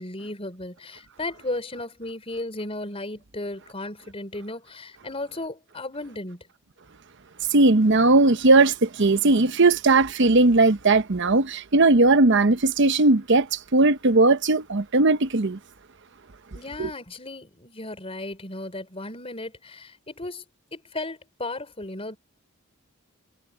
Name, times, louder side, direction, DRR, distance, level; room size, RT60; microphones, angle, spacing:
voice 1, 0.0-6.4 16.5-20.4 20.7-22.2, left 2 dB, 25° left, 4.7 m, -35 dB
voice 2, 7.5-15.6 16.8-16.9, right 2 dB, 55° right, 0.9 m, -18 dB
head